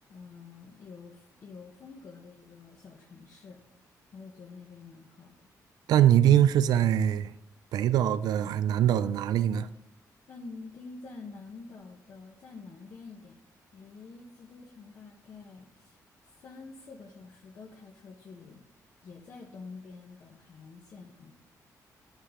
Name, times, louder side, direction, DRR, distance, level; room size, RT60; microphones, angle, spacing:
voice 1, 0.1-5.4 10.3-13.4 13.7-16.0 16.2-18.6 19.0-21.3, left 4 dB, 55° left, 1.0 m, -48 dB
voice 2, 5.9-7.3 7.7-9.7, right 10 dB, 90° right, 0.4 m, -23 dB
9.8 x 5.5 x 3.7 m
cardioid pair, 115°, 7 cm